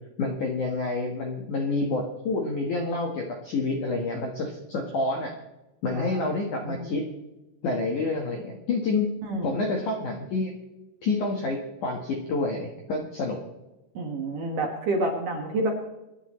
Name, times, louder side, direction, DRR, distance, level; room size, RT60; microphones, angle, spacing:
voice 1, 0.2-5.3 5.8-7.1 7.6-9.1 9.4-10.5 11.0-13.4, left 3 dB, 65° left, 1 dB, 1.9 m, -28 dB
voice 2, 5.9-6.9 9.2-9.6 13.9-15.7, right 2 dB, 60° right, 1 dB, 2.4 m, -29 dB
27.0 x 10.5 x 3.2 m, 1.0 s
omnidirectional pair, 5.8 m